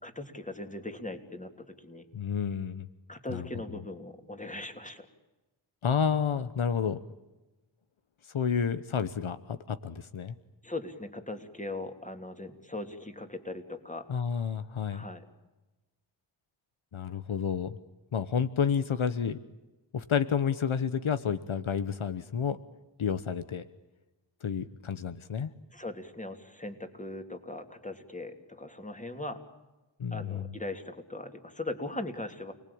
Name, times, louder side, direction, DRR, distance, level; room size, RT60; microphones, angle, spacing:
voice 1, 0.0-2.1 3.1-5.1 10.6-14.1 14.9-15.2 25.7-29.4 30.1-32.5, left 2 dB, 15° left, 6 dB, 3.1 m, -39 dB
voice 2, 2.1-2.9 3.3-3.5 5.8-7.0 8.3-10.3 14.1-15.0 16.9-17.8 18.1-19.4 19.9-22.6 23.0-23.6 24.4-25.5 30.0-30.5, left 7 dB, 80° left, 12 dB, 1.1 m, -30 dB
29.5 x 19.5 x 8.7 m, 1.1 s
wide cardioid pair, 50°, 47 cm